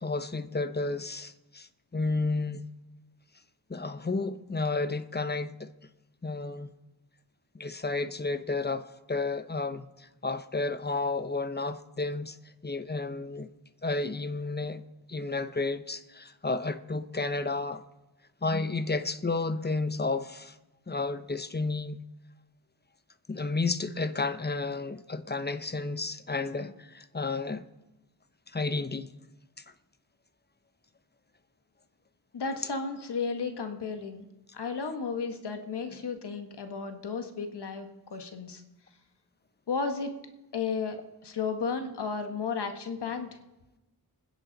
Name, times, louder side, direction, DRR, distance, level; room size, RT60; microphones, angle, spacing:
voice 1, 0.0-2.7 3.7-5.7 6.2-6.7 7.5-12.4 12.6-13.5 13.8-14.8 15.1-17.8 18.4-20.5 20.9-22.0 23.3-27.6 28.5-29.1 35.9-36.0, left 3 dB, 25° left, 0.9 m, -32 dB
voice 2, 32.3-34.2 34.5-38.6 39.7-40.1 40.5-41.0 41.2-43.4, left 5 dB, 90° left, 1.6 m, -33 dB
25.5 x 10.5 x 4.1 m
wide cardioid pair, 65°, 39 cm